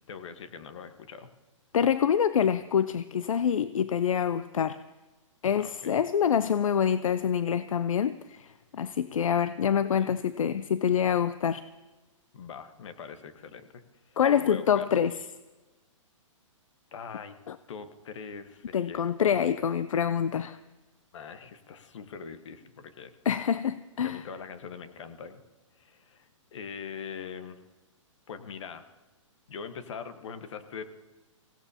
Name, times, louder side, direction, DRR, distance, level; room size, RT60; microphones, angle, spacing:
voice 1, 0.1-1.3 5.6-6.0 9.6-10.1 12.3-14.9 16.9-17.4 17.7-19.1 21.1-23.1 24.0-25.4 25.7-27.6 28.3-28.8 29.5-30.8, left 6 dB, 65° left, 9 dB, 1.4 m, -42 dB
voice 2, 1.7-4.8 5.4-11.6 14.2-15.2 17.5-17.6 18.7-20.6 23.2-24.2, left 8 dB, 85° left, 14 dB, 0.5 m, -26 dB
24.5 x 17.0 x 2.9 m, 1.2 s
hypercardioid pair, 140°, 17 cm